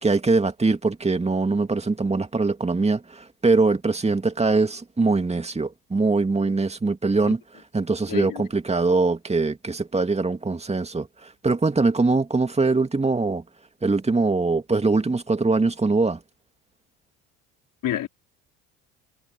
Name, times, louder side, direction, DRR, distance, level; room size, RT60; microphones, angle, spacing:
voice 1, 0.0-7.4 7.7-13.4 13.8-16.2, right 3 dB, 15° right, 2.3 m, -22 dB
voice 2, 8.1-8.4 17.8-18.1, left 12 dB, 55° left, 4.7 m, -28 dB
hypercardioid pair, 70°, 38 cm